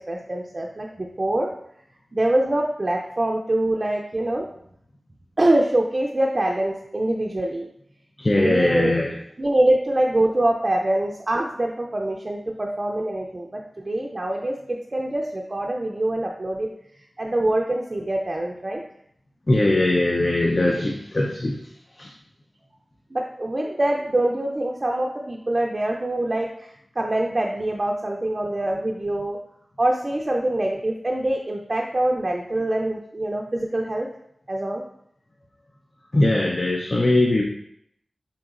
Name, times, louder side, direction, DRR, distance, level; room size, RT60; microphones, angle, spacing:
voice 1, 0.0-1.5 2.1-4.5 5.4-7.7 8.4-9.0 9.4-16.7 17.2-18.8 23.1-26.7 27.0-29.4 29.8-34.1 34.5-34.8, right 1 dB, 45° right, 0 dB, 0.4 m, -24 dB
voice 2, 8.2-9.1 19.5-21.6 22.0-22.1 36.1-37.4, left 1 dB, 45° left, -1 dB, 0.5 m, -20 dB
4.0 x 3.9 x 2.4 m, 0.71 s
cardioid pair, 45°, 0 cm